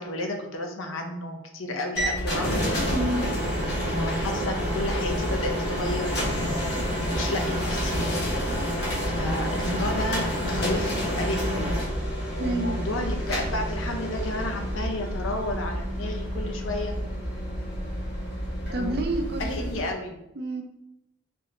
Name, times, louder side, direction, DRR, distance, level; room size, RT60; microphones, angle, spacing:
voice 1, 0.0-2.6 3.8-6.2 7.1-8.0 9.0-11.7 12.3-16.9 18.7-18.9 19.4-20.2, left 1 dB, 85° left, 3 dB, 0.7 m, -32 dB
sound 1, 1.9-19.8, equal, 55° left, 1.1 m, -28 dB
voice 2, 2.9-3.2 12.4-12.9 18.7-19.7 20.4-20.6, right 2 dB, 50° right, 4 dB, 0.5 m, -29 dB
3.6 x 3.3 x 2.9 m, 0.83 s
head